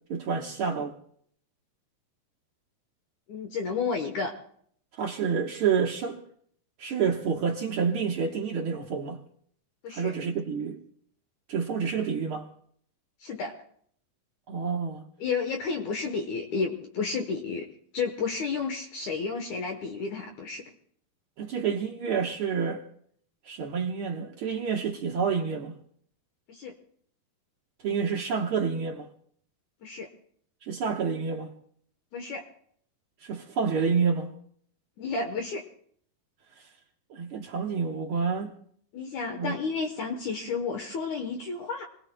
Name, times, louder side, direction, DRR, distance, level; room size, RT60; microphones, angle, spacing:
voice 1, 0.1-1.0 4.9-6.2 6.8-9.2 9.9-10.8 11.5-12.5 14.5-15.0 21.4-22.8 23.4-25.8 27.8-29.1 30.6-31.5 33.2-34.3 37.1-38.5 39.4-39.5, right 6 dB, 80° right, 1.2 m, -28 dB
voice 2, 3.3-4.3 9.8-10.1 13.2-13.5 15.2-17.7 17.9-20.6 26.5-26.7 29.8-30.1 32.1-32.4 35.0-35.6 38.9-41.8, left 4 dB, 65° left, 2.2 m, -31 dB
28.0 x 19.5 x 2.2 m
omnidirectional pair, 4.0 m